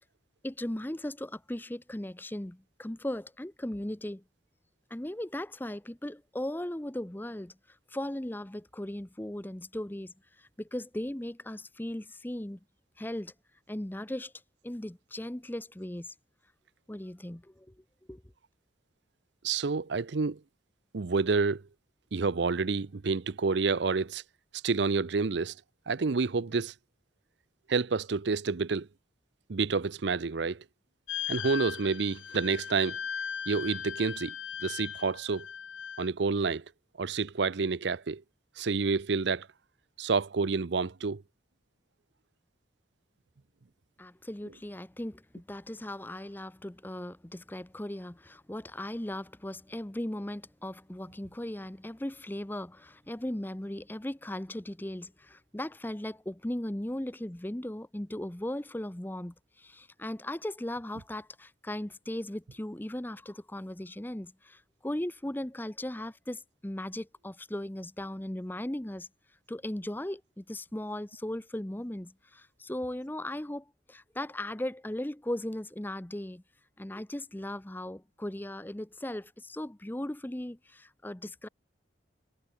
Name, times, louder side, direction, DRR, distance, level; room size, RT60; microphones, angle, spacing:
voice 1, 0.4-4.2 4.9-7.5 7.9-12.6 13.0-13.3 13.7-14.3 14.6-16.1 16.9-17.7 18.1-18.2 44.0-69.1 69.5-76.4 76.8-81.5, left 1 dB, 10° left, 0.6 m, -37 dB
voice 2, 19.4-20.4 20.9-21.6 22.1-24.2 24.6-25.5 25.9-26.7 27.7-28.9 29.5-30.6 31.3-33.0 33.5-34.3 34.6-35.5 36.0-36.6 37.0-38.2 38.6-39.5 40.0-41.2, right 4 dB, 65° right, 0.6 m, -29 dB
sound 1, 31.1-36.1, left 8 dB, 90° left, 1.5 m, -38 dB
head